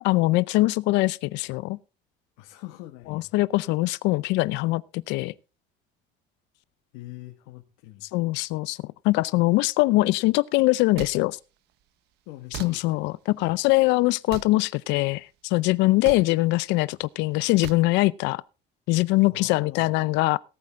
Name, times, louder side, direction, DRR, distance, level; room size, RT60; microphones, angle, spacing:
voice 1, 0.0-1.8 3.1-5.3 8.1-11.4 12.6-18.4 18.9-20.4, left 20 dB, 65° left, 0.5 m, -22 dB
voice 2, 2.4-3.3 6.9-8.1 12.2-13.0 19.3-19.9, left 17 dB, 90° left, 1.6 m, -43 dB
sound 1, 11.0-11.1 12.5-12.7 14.3-14.5 16.0-16.2 17.6-17.8, right 13 dB, 55° right, 0.8 m, -36 dB
18.0 x 8.5 x 3.6 m
cardioid pair, 165°, 20 cm